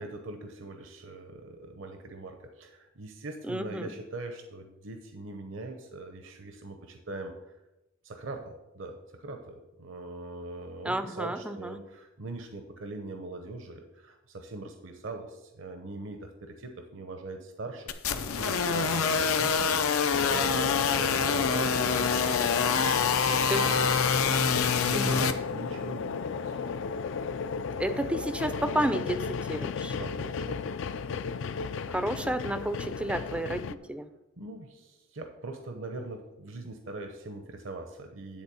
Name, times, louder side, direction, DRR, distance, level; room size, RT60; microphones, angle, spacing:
voice 1, 0.0-7.5 8.0-24.0 24.5-26.5 29.9-30.6 34.4-38.4, right 2 dB, 60° right, 5 dB, 0.8 m, -41 dB
voice 2, 3.4-3.9 10.8-11.8 23.5-23.7 24.9-25.2 27.8-30.0 31.9-34.1, right 1 dB, 5° right, 10 dB, 0.4 m, -31 dB
sound 1, 17.9-25.3, left 5 dB, 90° left, 0.7 m, -26 dB
sound 2, 20.1-33.7, left 5 dB, 60° left, 0.4 m, -34 dB
10.5 x 4.2 x 6.9 m, 0.98 s
head